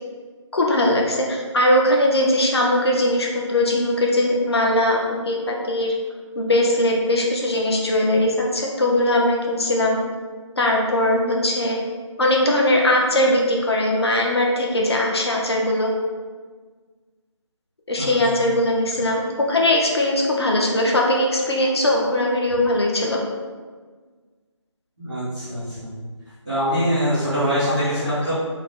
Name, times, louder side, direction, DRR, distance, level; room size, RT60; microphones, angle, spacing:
voice 1, 0.5-5.9 6.3-10.0 10.6-11.8 12.2-15.9 17.9-23.2 27.7-27.8 28.0-28.2, left 1 dB, 55° left, -1 dB, 0.6 m, -20 dB
voice 2, 25.0-25.9 26.4-28.3, equal, 5° left, -22 dB, 0.4 m, -23 dB
2.7 x 2.0 x 3.5 m, 1.5 s
figure-of-eight pair, 165°, 16 cm